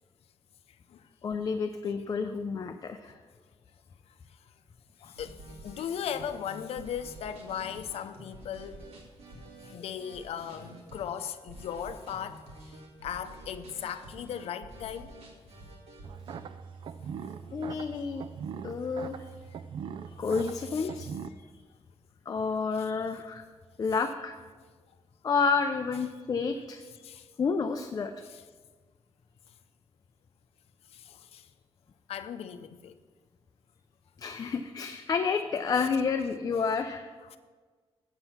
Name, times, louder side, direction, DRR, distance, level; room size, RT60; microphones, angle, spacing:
voice 1, 1.2-3.2 17.5-18.3 18.6-19.3 20.2-21.1 22.3-23.5 23.8-24.4 25.2-26.8 27.4-28.1 34.2-37.1, left 5 dB, 35° left, 0.4 m, -30 dB
voice 2, 5.0-8.8 9.7-12.4 13.0-15.1 20.2-20.3 20.7-21.0 27.0-27.3 30.9-31.5 32.1-32.9 37.3-37.4, left 8 dB, 85° left, 0.6 m, -37 dB
sound 1, 5.1-16.4, right 1 dB, 85° right, 2.0 m, -49 dB
sound 2, 16.0-21.3, right 7 dB, 55° right, 0.4 m, -41 dB
7.9 x 7.5 x 5.8 m
wide cardioid pair, 145°, 10 cm